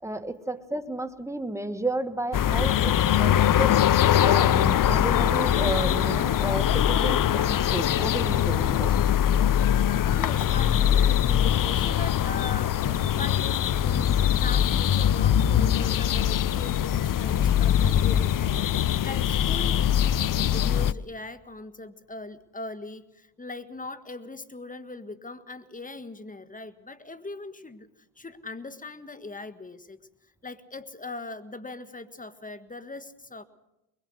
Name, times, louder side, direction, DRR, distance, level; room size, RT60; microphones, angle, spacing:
voice 1, 0.0-8.9, right 1 dB, 5° right, 9 dB, 1.9 m, -32 dB
sound 1, 2.3-20.9, left 10 dB, 55° left, 0.7 m, -22 dB
voice 2, 10.1-27.9 28.2-30.0 30.4-33.4, left 2 dB, 20° left, 11 dB, 1.8 m, -40 dB
22.5 x 22.0 x 6.5 m, 0.91 s
cardioid pair, 65°, 39 cm